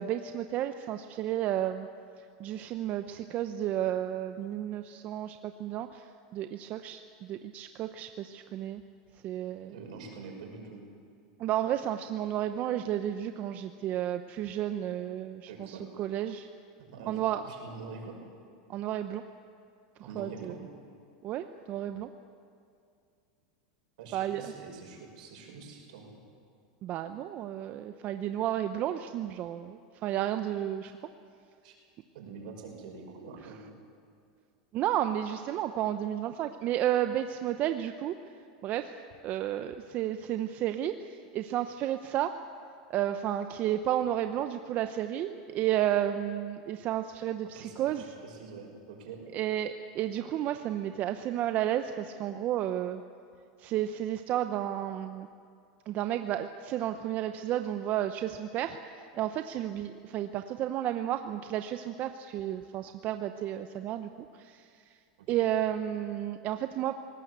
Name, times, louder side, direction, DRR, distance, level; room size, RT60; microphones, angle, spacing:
voice 1, 0.0-1.9 2.4-6.1 6.3-8.8 9.2-9.7 11.4-16.5 17.1-17.4 18.7-19.2 20.2-20.5 21.2-22.1 24.1-24.4 26.8-30.9 34.7-38.1 38.6-38.9 39.2-42.3 42.9-48.0 49.3-53.0 53.6-55.3 55.9-64.7 65.3-67.0, right 11 dB, 40° right, 8 dB, 0.8 m, -32 dB
voice 2, 9.7-10.8 15.5-15.8 16.9-18.2 20.1-20.6 24.0-26.1 30.8-30.9 31.6-31.7 32.1-33.7 47.4-49.2 65.2-65.5, right 4 dB, 75° right, 2 dB, 5.8 m, -45 dB
20.0 x 18.5 x 8.2 m, 2.3 s
supercardioid pair, 130°, 4 cm